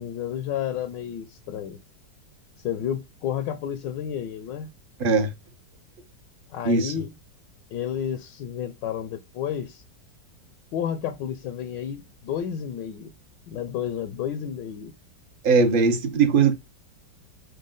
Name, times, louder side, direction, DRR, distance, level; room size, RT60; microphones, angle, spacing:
voice 1, 0.0-1.8 2.6-4.7 6.5-7.1 7.7-9.8 10.7-13.1 13.5-14.9, left 9 dB, 80° left, 1.3 m, -31 dB
voice 2, 5.0-5.3 6.6-6.9 15.4-16.5, right 5 dB, 45° right, 0.7 m, -20 dB
6.3 x 2.2 x 3.7 m
omnidirectional pair, 1.9 m